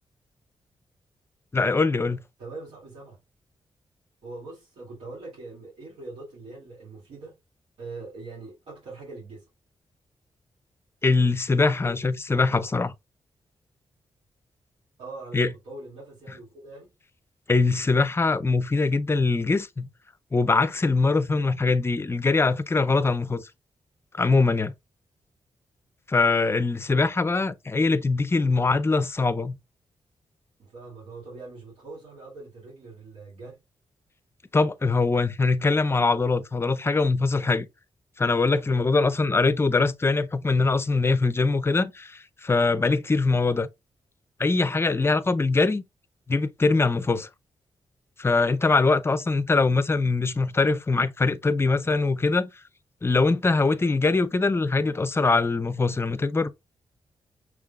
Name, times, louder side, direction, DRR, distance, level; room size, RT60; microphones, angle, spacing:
voice 1, 1.5-2.2 11.0-12.9 15.3-15.5 17.5-19.9 20.3-23.5 24.1-24.7 26.1-29.6 34.5-37.7 38.2-43.7 44.4-45.8 46.3-47.3 48.2-52.5 53.0-56.5, left 3 dB, 25° left, 0.5 m, -22 dB
voice 2, 2.4-3.2 4.2-7.4 7.8-9.5 15.0-16.9 26.9-27.3 28.4-28.7 30.6-33.6, right 3 dB, 85° right, 2.3 m, -42 dB
6.0 x 3.7 x 2.3 m
wide cardioid pair, 105°, 10 cm